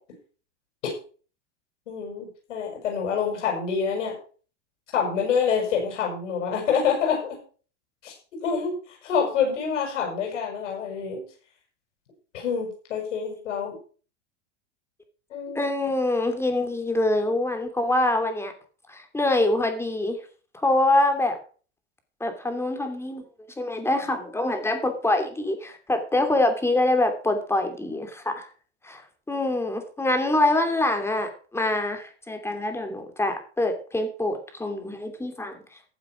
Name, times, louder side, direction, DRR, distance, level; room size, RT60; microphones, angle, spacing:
voice 1, 1.9-4.2 4.9-7.4 8.0-8.1 8.4-11.2 12.3-13.8 15.3-15.6, left 6 dB, 90° left, 1 dB, 7.1 m, -26 dB
voice 2, 15.6-18.5 18.9-20.2 20.6-21.4 22.2-23.2 23.6-28.4 28.8-29.0 29.3-35.6, left 2 dB, 5° left, 6 dB, 2.8 m, -25 dB
14.5 x 7.6 x 6.0 m, 0.40 s
supercardioid pair, 130°, 36 cm